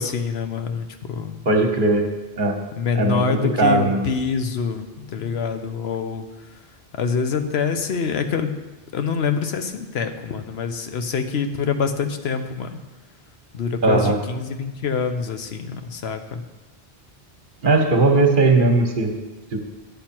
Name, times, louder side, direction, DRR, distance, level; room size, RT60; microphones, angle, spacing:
voice 1, 0.0-1.4 2.8-6.3 6.9-8.5 8.9-12.8 13.5-16.4, left 5 dB, 85° left, 7 dB, 1.0 m, -25 dB
voice 2, 1.4-2.1 2.4-2.6 3.0-4.0 13.8-14.2 17.6-19.1, right 2 dB, 55° right, 3 dB, 1.3 m, -18 dB
9.9 x 8.0 x 4.4 m, 1.1 s
omnidirectional pair, 1.0 m